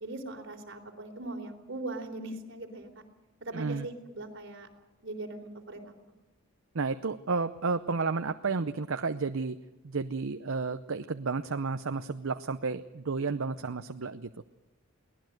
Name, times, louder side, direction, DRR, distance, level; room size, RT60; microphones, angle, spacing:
voice 1, 0.0-2.9 3.4-4.7 5.0-5.9, right 2 dB, 60° right, 3 dB, 3.8 m, -40 dB
voice 2, 3.5-3.9 6.7-9.6 9.8-14.3, right 4 dB, 80° right, 10 dB, 0.7 m, -32 dB
22.5 x 18.5 x 7.9 m, 0.99 s
head